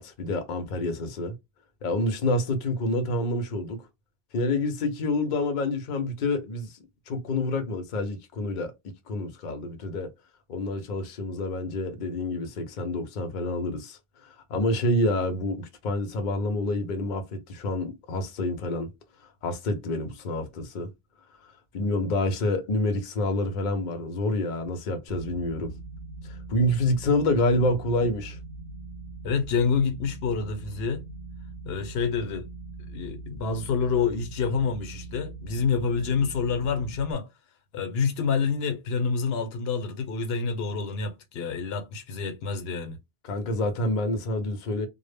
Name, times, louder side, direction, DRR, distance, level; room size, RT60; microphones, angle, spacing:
voice 1, 0.0-1.4 1.8-3.9 4.3-6.8 7.1-8.7 9.1-10.1 10.5-18.9 19.4-20.9 21.7-25.7 26.3-28.4 43.2-44.9, left 1 dB, 55° left, 0.6 m, -28 dB
sound 1, 25.1-37.1, right 3 dB, 85° right, 0.9 m, -41 dB
voice 2, 29.2-31.0 31.7-32.5 32.9-37.3 37.7-43.0, left 5 dB, 80° left, 0.8 m, -27 dB
2.0 x 2.0 x 3.2 m
omnidirectional pair, 1.0 m